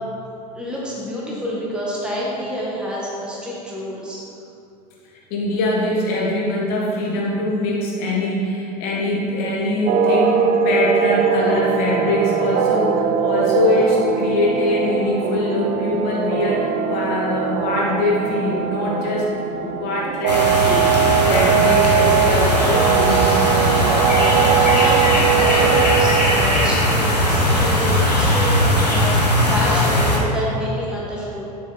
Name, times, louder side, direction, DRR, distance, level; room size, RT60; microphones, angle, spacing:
voice 1, 0.5-4.2 24.0-25.0 25.3-28.6 28.9-31.4, equal, 5° right, -6 dB, 1.6 m, -28 dB
voice 2, 5.3-23.3, left 1 dB, 50° left, -4 dB, 1.7 m, -23 dB
sound 1, 9.9-26.5, right 8 dB, 45° right, 0.6 m, -20 dB
sound 2, 20.3-30.2, left 1 dB, 85° left, 1.2 m, -19 dB
7.8 x 6.6 x 4.1 m, 2.7 s
figure-of-eight pair, 75°, 20 cm